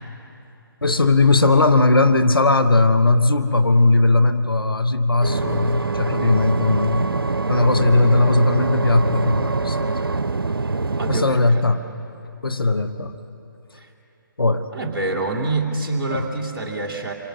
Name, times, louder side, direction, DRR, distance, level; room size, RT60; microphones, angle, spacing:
voice 1, 0.8-7.2 7.5-9.9 11.1-11.8 12.4-13.1 14.4-14.7, left 2 dB, 80° left, 10 dB, 1.2 m, -18 dB
sound 1, 5.2-11.2, right 3 dB, 85° right, 0.5 m, -24 dB
voice 2, 11.0-11.6 13.7-13.9 14.7-17.1, right 2 dB, 10° right, -4 dB, 2.5 m, -26 dB
27.0 x 24.0 x 6.3 m, 2.8 s
figure-of-eight pair, 140°, 12 cm